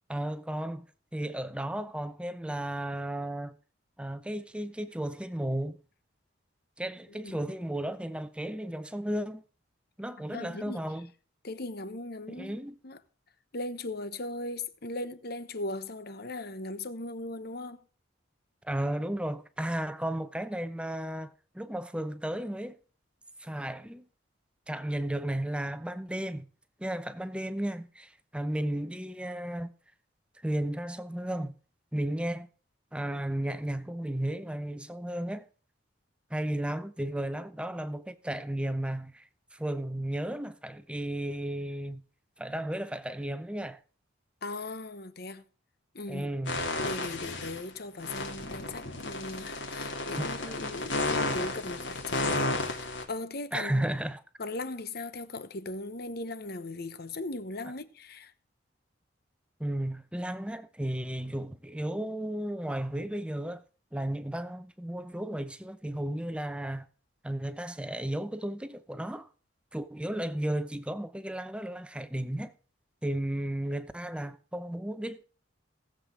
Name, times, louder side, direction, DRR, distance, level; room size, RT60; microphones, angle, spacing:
voice 1, 0.1-0.9 1.1-3.5 4.0-5.8 6.8-9.4 10.0-11.1 12.3-12.8 18.6-22.8 23.4-24.1 24.7-26.5 26.8-29.7 30.4-31.5 31.9-32.5 32.9-35.5 36.3-42.0 42.4-43.8 46.1-46.6 50.2-50.6 53.5-54.2 59.6-63.6 63.9-66.9 67.2-69.3 69.7-72.5 73.0-75.2, right 1 dB, 5° right, 0.7 m, -34 dB
voice 2, 10.3-10.8 11.4-12.6 12.8-13.0 13.5-17.8 44.4-45.4 45.9-46.3 46.8-53.9 54.4-58.3, left 2 dB, 55° left, 1.1 m, -38 dB
sound 1, 46.5-47.6 48.0-53.0, left 2 dB, 70° left, 3.1 m, -32 dB
19.0 x 7.8 x 3.7 m
head